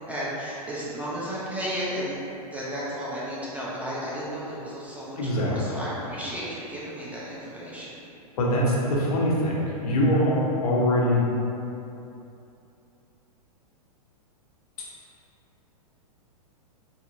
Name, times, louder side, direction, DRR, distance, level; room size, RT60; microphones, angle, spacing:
voice 1, 0.1-2.2 2.5-8.0, equal, 5° right, -7 dB, 0.5 m, -33 dB
voice 2, 5.2-5.8 8.4-9.5 9.8-11.3, left 1 dB, 70° left, -4 dB, 0.9 m, -23 dB
4.2 x 2.8 x 2.5 m, 2.8 s
hypercardioid pair, 125°, 20 cm